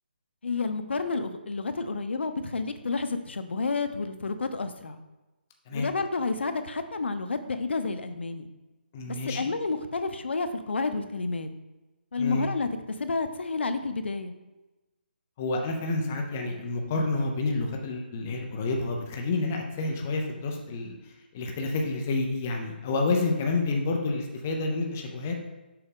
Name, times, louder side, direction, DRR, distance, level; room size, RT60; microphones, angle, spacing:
voice 1, 0.4-5.0 5.7-8.5 9.1-11.5 12.1-12.7 13.0-14.3, left 4 dB, 80° left, 9 dB, 0.7 m, -30 dB
voice 2, 8.9-9.5 12.2-12.5 15.4-25.4, left 3 dB, 10° left, 1 dB, 0.3 m, -29 dB
6.8 x 4.9 x 3.7 m, 1.1 s
hypercardioid pair, 180°, 6 cm